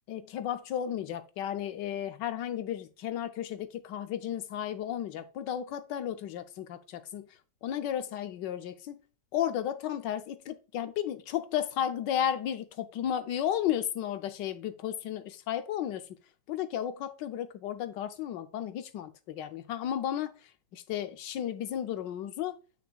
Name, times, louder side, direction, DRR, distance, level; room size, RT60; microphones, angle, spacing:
voice 1, 0.1-7.3 7.6-9.0 9.3-16.1 16.5-20.3 20.7-22.6, left 10 dB, 90° left, 1.4 m, -33 dB
8.7 x 5.9 x 2.3 m
omnidirectional pair, 1.9 m